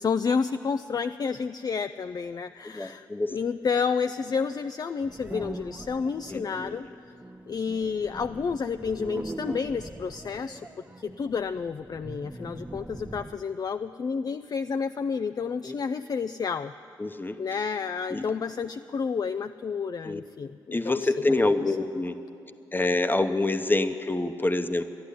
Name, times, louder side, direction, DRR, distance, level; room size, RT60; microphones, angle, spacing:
voice 1, 0.0-6.9 7.5-10.7 11.0-16.7 17.4-21.8, left 5 dB, 40° left, 10 dB, 0.4 m, -30 dB
voice 2, 2.7-3.3 6.3-6.8 15.6-15.7 17.0-17.4 18.1-18.3 20.0-20.2 20.7-22.1 22.7-24.8, left 2 dB, 20° left, 9 dB, 0.9 m, -26 dB
sound 1, 5.0-13.5, right 2 dB, 15° right, 0.7 m, -42 dB
11.5 x 10.5 x 10.0 m, 2.6 s
supercardioid pair, 40°, 10 cm